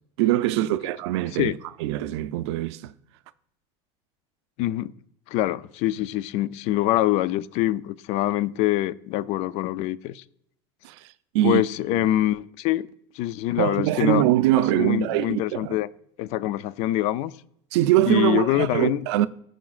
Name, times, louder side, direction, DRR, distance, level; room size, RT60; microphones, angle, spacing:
voice 1, 0.2-2.9 10.8-11.0 11.3-11.6 13.6-15.8 17.7-19.3, right 14 dB, 85° right, 0.4 m, -23 dB
voice 2, 4.6-4.9 5.3-10.2 11.4-12.9 13.1-14.3 14.5-15.9 16.2-17.3 18.1-19.0, left 14 dB, 55° left, 0.4 m, -24 dB
14.5 x 5.0 x 2.4 m
supercardioid pair, 145°, 14 cm